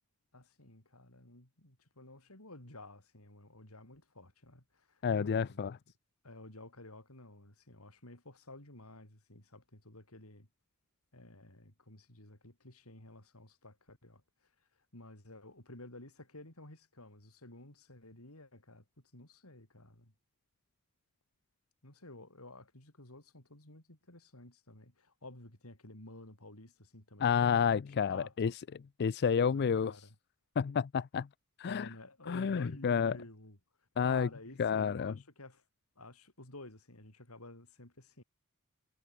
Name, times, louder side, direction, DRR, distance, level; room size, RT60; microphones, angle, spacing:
voice 1, 0.3-5.6 6.2-10.5 11.1-14.2 14.9-18.8 19.1-20.1 21.8-27.8 28.1-28.6 29.5-30.1 31.6-33.6 34.0-35.6 36.0-38.2, left 2 dB, 75° left, 5.9 m, -52 dB
voice 2, 5.0-5.8 27.2-28.5 29.0-29.9 30.6-31.3 31.6-31.9 32.3-33.1 34.0-34.3 34.6-35.1, left 6 dB, 50° left, 0.4 m, -30 dB
head